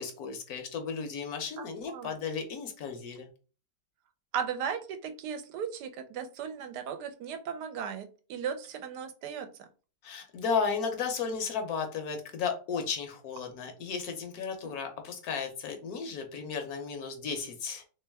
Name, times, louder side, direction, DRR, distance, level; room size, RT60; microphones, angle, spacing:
voice 1, 0.0-3.3 10.0-17.8, left 5 dB, 65° left, 5 dB, 1.1 m, -34 dB
voice 2, 1.6-2.1 4.3-9.5 14.6-14.7, right 7 dB, 75° right, 9 dB, 1.1 m, -36 dB
3.3 x 3.1 x 3.4 m, 0.36 s
omnidirectional pair, 1.9 m